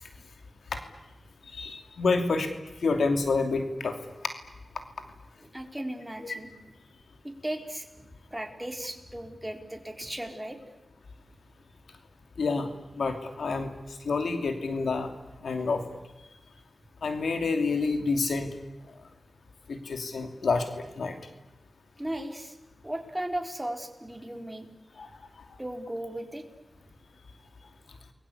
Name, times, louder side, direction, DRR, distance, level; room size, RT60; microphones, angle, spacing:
voice 1, 1.5-2.5 2.8-4.0 6.2-6.3 12.4-13.7 14.0-15.1 15.4-15.8 17.0-18.5 19.7-21.2 25.0-25.1, left 4 dB, 85° left, 6 dB, 2.9 m, -28 dB
voice 2, 5.5-6.5 7.2-10.6 22.0-22.6 22.8-24.7 25.6-26.4, right 1 dB, 10° right, 4 dB, 4.1 m, -36 dB
30.0 x 22.0 x 8.4 m, 1.1 s
cardioid pair, 60°, 0 cm